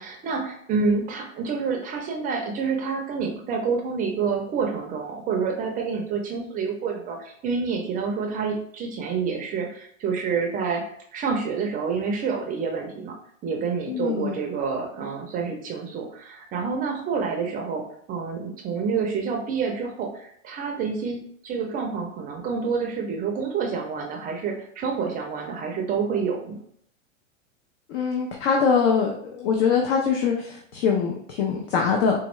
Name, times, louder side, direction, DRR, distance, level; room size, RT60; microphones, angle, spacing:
voice 1, 0.0-10.8 11.1-13.2 13.4-17.8 18.1-26.6, right 5 dB, 20° right, 1 dB, 0.5 m, -28 dB
voice 2, 13.9-14.4 27.9-32.3, left 6 dB, 55° left, 1 dB, 0.7 m, -23 dB
4.3 x 2.3 x 3.1 m, 0.67 s
hypercardioid pair, 125°, 40 cm